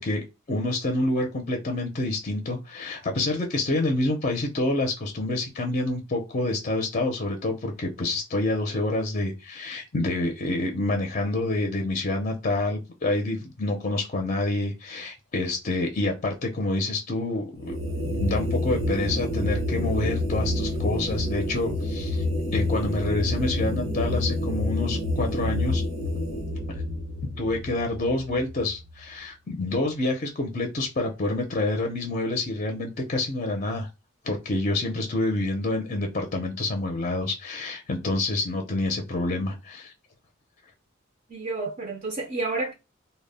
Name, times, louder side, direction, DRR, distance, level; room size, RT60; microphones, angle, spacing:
voice 1, 0.0-22.2 22.5-25.8 27.4-33.9 34.2-39.9, left 2 dB, 40° left, 0.5 m, -27 dB
sound 1, 17.6-28.9, left 1 dB, 85° right, 0.8 m, -28 dB
voice 2, 41.3-42.7, right 3 dB, 40° right, 0.5 m, -30 dB
2.1 x 2.0 x 3.3 m
head